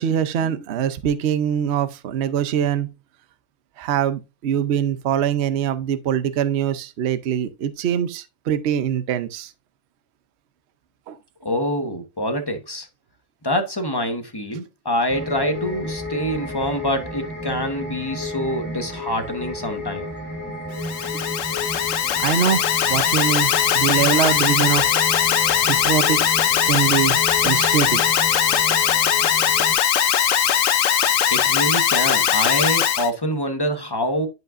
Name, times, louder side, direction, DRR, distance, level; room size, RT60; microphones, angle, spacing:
voice 1, 0.0-2.9 3.8-9.5 11.1-11.2 21.2-21.3 22.2-22.6 22.9-24.9 25.7-26.2 26.6-27.2 27.4-28.0, right 9 dB, 55° right, 0.9 m, -23 dB
voice 2, 11.4-12.9 13.4-20.1 31.3-34.3, equal, 20° left, 1.0 m, -25 dB
sound 1, 15.1-29.7, left 1 dB, 15° right, 1.2 m, -32 dB
Alarm, 20.7-33.1, left 9 dB, 70° left, 1.1 m, -20 dB
11.0 x 5.3 x 2.5 m
omnidirectional pair, 1.5 m